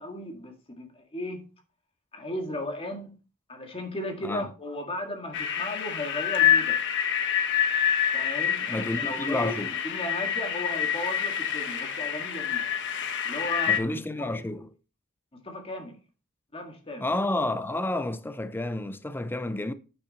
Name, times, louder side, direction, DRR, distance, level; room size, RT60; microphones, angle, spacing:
voice 1, 0.0-1.4 2.1-3.1 3.5-6.8 8.1-12.7 13.2-13.8 14.2-14.4 15.4-16.0 16.5-17.1, left 1 dB, 25° left, 2.0 m, -35 dB
sound 1, 5.3-13.8, left 9 dB, 60° left, 1.2 m, -27 dB
voice 2, 8.7-9.7 13.7-14.7 17.0-19.7, left 1 dB, 10° left, 0.5 m, -30 dB
8.7 x 6.7 x 4.3 m
head